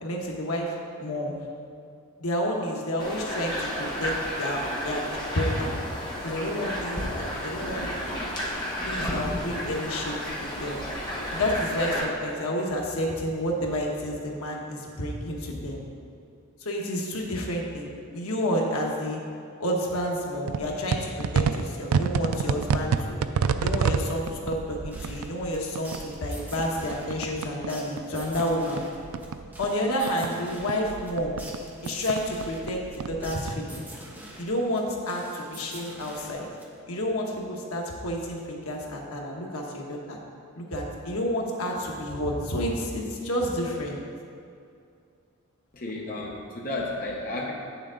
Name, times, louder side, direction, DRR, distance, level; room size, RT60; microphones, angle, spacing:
voice 1, 0.0-1.3 2.2-5.0 5.3-5.7 6.2-7.9 8.9-10.8 11.3-15.8 16.6-19.2 19.6-23.2 23.6-28.8 29.6-31.4 31.8-32.8 33.1-33.8 34.4-36.5 36.9-40.2 40.5-44.0, equal, 80° left, -1 dB, 1.2 m, -30 dB
sound 1, 3.0-12.0, equal, 20° left, 1.2 m, -32 dB
sound 2, 20.5-27.7 28.0-30.3 30.6-33.5, right 6 dB, 80° right, 0.4 m, -29 dB
sound 3, 24.9-37.0, right 1 dB, 10° right, 0.9 m, -46 dB
voice 2, 45.7-47.5, left 2 dB, 40° left, -2 dB, 0.8 m, -32 dB
8.9 x 7.0 x 3.8 m, 2.4 s
head